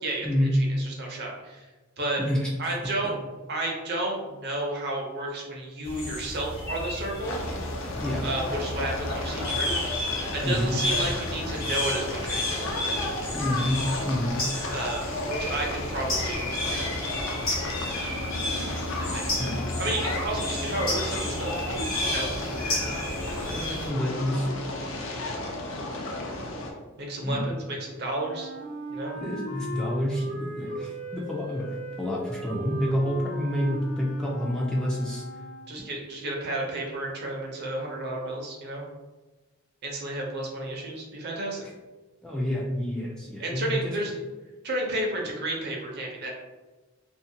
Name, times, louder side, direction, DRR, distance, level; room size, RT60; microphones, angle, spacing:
voice 1, 0.0-1.6 2.0-2.2 2.6-3.2 3.5-7.4 8.2-9.8 10.3-12.7 14.7-16.4 16.7-16.9 19.1-19.2 19.8-21.6 22.0-22.3 27.0-28.5 28.9-29.1 35.7-38.8 39.8-41.6 43.4-44.2 44.6-46.3, right 2 dB, 55° right, 0 dB, 0.6 m, -32 dB
voice 2, 2.2-2.7 8.0-8.2 10.4-10.8 13.3-14.4 19.4-19.6 22.4-22.5 23.5-24.5 27.2-27.4 29.2-35.2 42.2-43.9, left 1 dB, 5° left, -4 dB, 0.3 m, -28 dB
sound 1, 5.8-23.9, left 1 dB, 45° left, 0.9 m, -32 dB
sound 2, 7.2-26.7, left 1 dB, 65° left, 0.4 m, -34 dB
Wind instrument woodwind instrument, 28.1-35.9, right 1 dB, 80° right, 0.8 m, -37 dB
2.4 x 2.1 x 2.7 m, 1.2 s
head